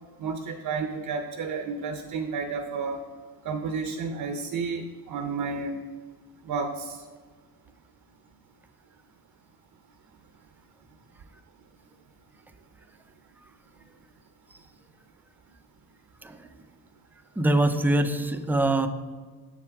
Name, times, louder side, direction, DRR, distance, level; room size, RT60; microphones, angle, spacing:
voice 1, 0.2-3.0 3.4-5.8 6.5-7.0, right 4 dB, 60° right, 7 dB, 0.6 m, -31 dB
voice 2, 17.4-18.9, right 1 dB, 5° right, 8 dB, 0.3 m, -23 dB
7.7 x 5.9 x 4.7 m, 1.5 s
wide cardioid pair, 145°, 37 cm